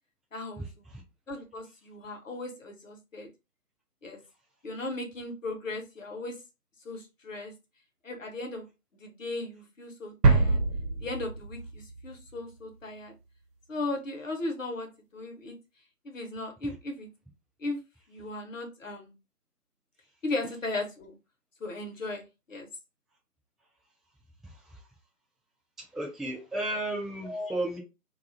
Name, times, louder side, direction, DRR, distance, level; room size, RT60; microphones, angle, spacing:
voice 1, 0.3-0.9 1.3-3.3 4.0-4.2 4.6-6.4 6.8-7.5 8.0-8.7 8.9-10.6 11.0-13.1 13.7-15.5 16.0-17.1 17.6-17.8 18.1-19.1 20.2-21.2 21.6-22.7 27.2-27.5, left 2 dB, 55° left, 0.8 m, -37 dB
sound 1, 10.2-12.1 12.4-12.5, right 3 dB, 90° right, 0.8 m, -25 dB
voice 2, 24.4-24.8 25.8-27.8, right 1 dB, ahead, 0.3 m, -34 dB
2.5 x 2.3 x 2.4 m
figure-of-eight pair, 160°, 47 cm